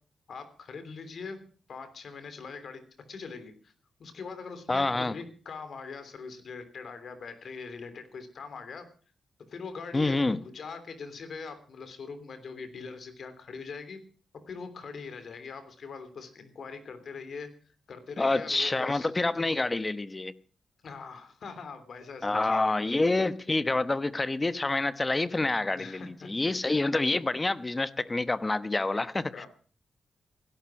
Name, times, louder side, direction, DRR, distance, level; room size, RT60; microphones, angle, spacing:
voice 1, 0.3-1.4 1.7-2.8 3.1-3.7 4.0-8.9 9.5-14.0 14.5-17.5 17.9-19.1 20.8-22.6 25.7-26.5 29.3-29.5, left 5 dB, 65° left, 3.3 m, -42 dB
voice 2, 4.7-5.1 9.9-10.4 18.2-20.3 22.2-29.3, left 2 dB, 25° left, 1.0 m, -27 dB
17.0 x 12.0 x 6.2 m
cardioid pair, 100°, 0 cm